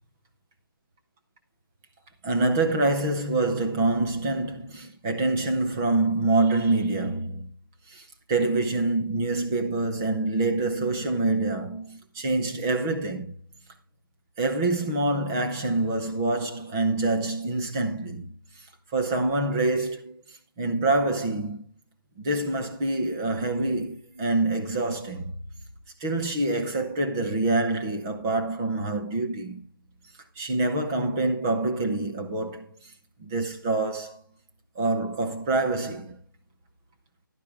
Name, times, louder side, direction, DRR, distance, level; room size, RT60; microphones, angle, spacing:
voice 1, 2.2-7.5 7.9-13.3 14.4-18.3 18.9-20.2 20.6-21.6 22.2-25.3 26.0-29.7 30.4-32.9 33.2-34.2 34.8-36.2, right 2 dB, 10° right, 0.7 m, -26 dB
11.5 x 9.8 x 3.5 m
hypercardioid pair, 175°, 11 cm